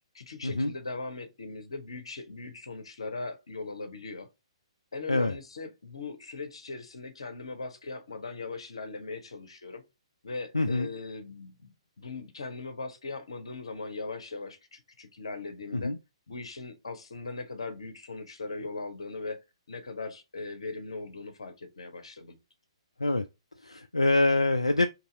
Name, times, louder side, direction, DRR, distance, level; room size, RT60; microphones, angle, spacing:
voice 1, 0.1-4.3 4.9-9.8 10.2-15.9 16.3-19.4 19.7-22.3, left 3 dB, 65° left, 0.9 m, -39 dB
voice 2, 10.5-10.9 15.7-16.0 23.0-23.3 23.6-24.9, left 2 dB, 85° left, 0.3 m, -25 dB
3.0 x 2.8 x 3.9 m
figure-of-eight pair, 125°, 3 cm